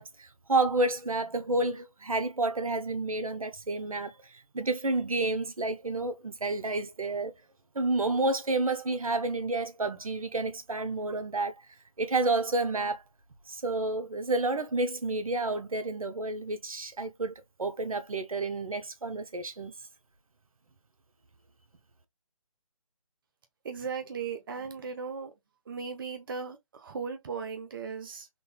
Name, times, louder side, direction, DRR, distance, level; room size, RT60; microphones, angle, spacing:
voice 1, 0.0-7.3 7.7-11.6 12.0-13.0 13.5-17.3 17.6-19.7, right 2 dB, 80° right, 0.8 m, -30 dB
voice 2, 23.6-25.3 25.6-28.3, right 5 dB, 40° right, 0.6 m, -37 dB
3.8 x 2.4 x 2.3 m
figure-of-eight pair, 145°, 18 cm